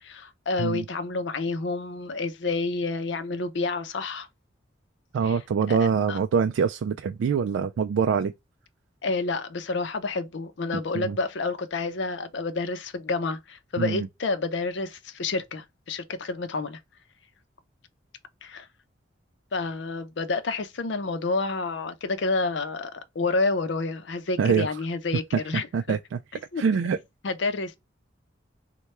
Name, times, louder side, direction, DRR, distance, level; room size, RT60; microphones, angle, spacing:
voice 1, 0.0-4.3 5.2-5.4 5.7-6.2 9.0-16.8 18.4-18.7 19.5-26.0 26.3-26.6 27.2-27.8, left 3 dB, 65° left, 0.6 m, -29 dB
voice 2, 5.1-8.3 10.9-11.2 13.8-14.1 24.4-24.7 25.7-26.2 26.6-27.0, right 6 dB, 85° right, 0.3 m, -24 dB
3.2 x 2.2 x 4.1 m
head